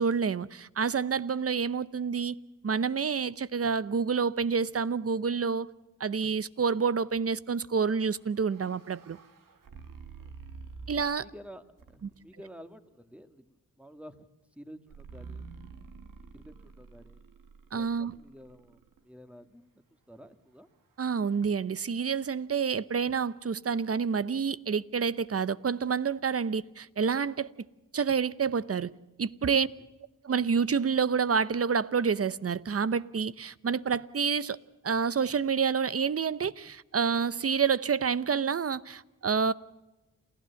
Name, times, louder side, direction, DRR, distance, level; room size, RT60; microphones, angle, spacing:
voice 1, 0.0-2.4 2.6-5.7 6.0-9.2 10.9-11.3 12.0-12.1 17.7-18.1 21.0-27.5 27.9-28.9 29.2-29.7 30.2-34.6 34.8-39.5, right 6 dB, 45° right, 0.8 m, -28 dB
sound 1, 8.0-11.3 11.8-12.3 14.9-19.0, right 5 dB, 85° right, 2.0 m, -48 dB
voice 2, 11.0-15.5 16.3-17.2 17.7-20.7 29.4-29.6, equal, 5° right, 1.8 m, -51 dB
28.0 x 15.0 x 7.1 m
cardioid pair, 60°, 32 cm